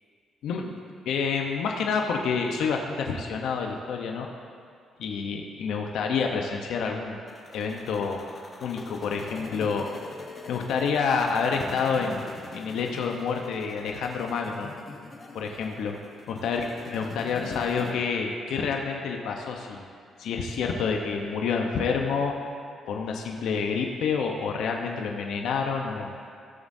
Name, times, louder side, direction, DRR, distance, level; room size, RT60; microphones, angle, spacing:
voice 1, 0.4-0.7 1.1-4.3 5.0-7.2 7.5-8.2 8.6-9.9 10.5-14.7 15.3-16.0 16.3-19.8 20.2-22.3 22.9-26.1, left 5 dB, 80° left, 2 dB, 0.8 m, -28 dB
sound 1, 7.3-17.9, left 3 dB, 40° left, 1.1 m, -44 dB
16.5 x 7.1 x 2.7 m, 2.2 s
cardioid pair, 90°, 0 cm